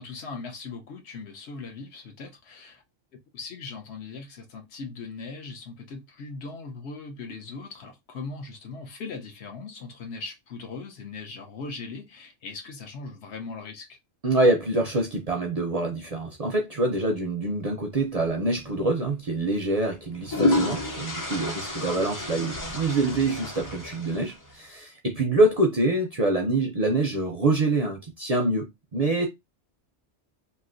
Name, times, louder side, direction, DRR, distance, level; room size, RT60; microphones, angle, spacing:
voice 1, 0.0-2.8 3.3-14.0 21.9-22.0, left 4 dB, 70° left, 1.0 m, -39 dB
voice 2, 14.2-29.3, right 2 dB, 50° right, 0.5 m, -25 dB
sound 1, 18.6-18.8 19.9-24.5, left 2 dB, 25° left, 0.5 m, -29 dB
3.1 x 2.6 x 2.5 m
omnidirectional pair, 1.2 m